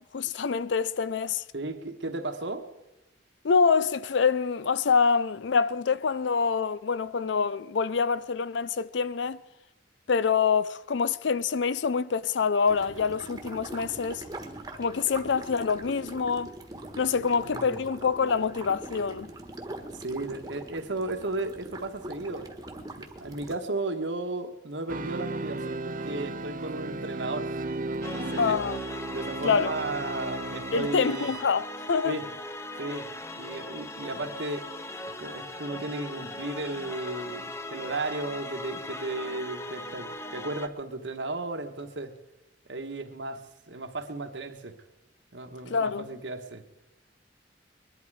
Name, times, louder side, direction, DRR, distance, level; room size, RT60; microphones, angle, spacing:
voice 1, 0.1-1.4 3.4-9.4 10.1-14.2 14.8-16.5 17.0-19.3 28.4-28.8 29.4-29.7 30.7-32.2 45.7-46.1, left 5 dB, 70° left, 0.5 m, -26 dB
voice 2, 1.5-2.7 17.1-17.8 20.0-22.5 22.9-27.5 28.0-28.6 29.1-31.3 32.0-32.3 32.8-33.1 33.4-34.6 35.2-42.1 42.7-44.8 45.3-46.6, right 2 dB, 70° right, 1.3 m, -35 dB
sound 1, 12.7-23.6, right 1 dB, 20° right, 1.3 m, -42 dB
sound 2, 24.9-31.5, right 2 dB, 45° right, 0.7 m, -35 dB
sound 3, 28.0-40.7, left 2 dB, 15° left, 0.5 m, -39 dB
21.5 x 11.0 x 4.8 m
head